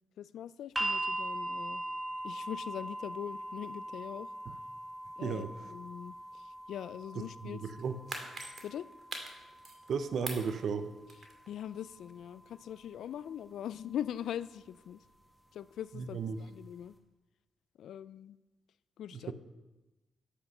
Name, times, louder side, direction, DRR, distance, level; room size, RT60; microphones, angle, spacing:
voice 1, 0.2-1.8 2.2-4.3 5.2-6.2 6.7-7.6 8.6-8.9 11.5-15.0 15.5-16.9 17.8-18.4 19.0-19.3, left 10 dB, 75° left, 17 dB, 0.3 m, -41 dB
sound 1, 0.8-12.8 13.9-14.0, right 1 dB, 10° right, 1.8 m, -41 dB
voice 2, 5.2-5.5 7.1-8.0 9.9-10.9 15.9-16.4 19.1-19.3, right 5 dB, 65° right, 10 dB, 0.7 m, -35 dB
sound 2, 7.8-9.9 10.3-11.5 11.9-12.0, right 3 dB, 50° right, 2.1 m, -43 dB
10.0 x 8.2 x 5.5 m, 1.1 s
cardioid pair, 70°, 0 cm